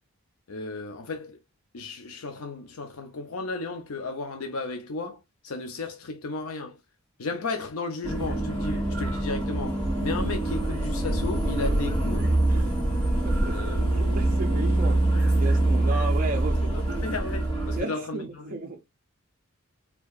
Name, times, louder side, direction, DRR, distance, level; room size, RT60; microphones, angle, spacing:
voice 1, 0.5-1.4 1.7-6.8 7.2-12.3 13.5-13.9 16.9-18.6, left 3 dB, 75° left, 0.6 m, -34 dB
sound 1, 8.0-17.8, right 1 dB, 20° left, 1.7 m, -25 dB
voice 2, 12.5-13.6 13.9-15.1 15.3-17.1 17.7-18.8, right 2 dB, 40° right, 0.5 m, -35 dB
4.5 x 2.8 x 2.4 m
head